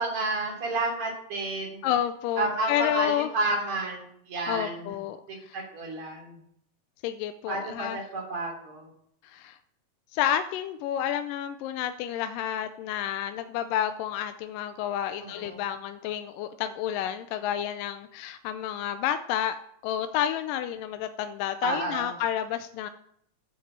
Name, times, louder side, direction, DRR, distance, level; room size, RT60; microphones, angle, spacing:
voice 1, 0.0-1.8 2.4-5.0 5.3-6.4 7.5-8.9 15.2-15.6 21.6-22.1, right 2 dB, 55° right, 0 dB, 4.2 m, -31 dB
voice 2, 1.8-3.3 4.5-5.2 5.5-5.6 7.0-8.0 9.2-9.6 10.1-19.6 19.8-22.9, left 10 dB, 85° left, 9 dB, 2.2 m, -30 dB
9.7 x 8.2 x 7.3 m, 0.70 s
omnidirectional pair, 3.8 m